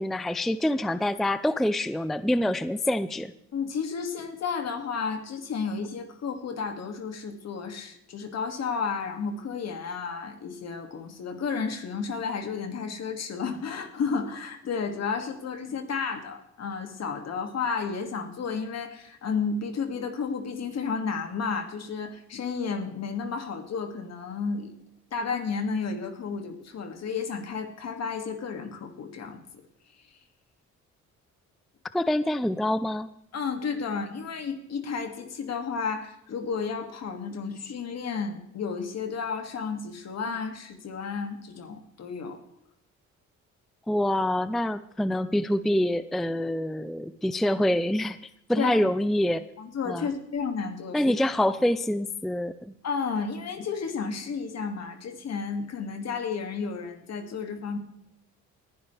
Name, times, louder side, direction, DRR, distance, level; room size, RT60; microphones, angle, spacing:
voice 1, 0.0-3.3 31.9-33.1 43.9-48.2 48.5-49.4 49.9-50.1 50.9-52.5, left 1 dB, ahead, 14 dB, 0.4 m, -26 dB
voice 2, 3.5-24.7 25.1-29.4 33.3-42.4 48.6-48.9 49.6-51.0 52.8-57.8, left 5 dB, 60° left, 5 dB, 2.4 m, -32 dB
20.0 x 11.5 x 3.4 m, 0.78 s
cardioid pair, 90°, 30 cm